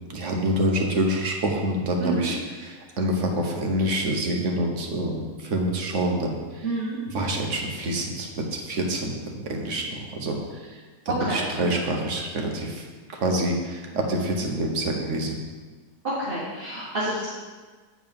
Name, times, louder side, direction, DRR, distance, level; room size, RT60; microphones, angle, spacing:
voice 1, 0.1-2.4 2.6-6.6 7.1-10.4 11.3-12.9 13.1-15.4, right 1 dB, 55° right, 1 dB, 1.3 m, -26 dB
voice 2, 6.6-7.0 11.1-11.5 16.0-17.3, right 2 dB, 35° right, -9 dB, 1.9 m, -28 dB
8.8 x 5.1 x 5.3 m, 1.4 s
omnidirectional pair, 1.7 m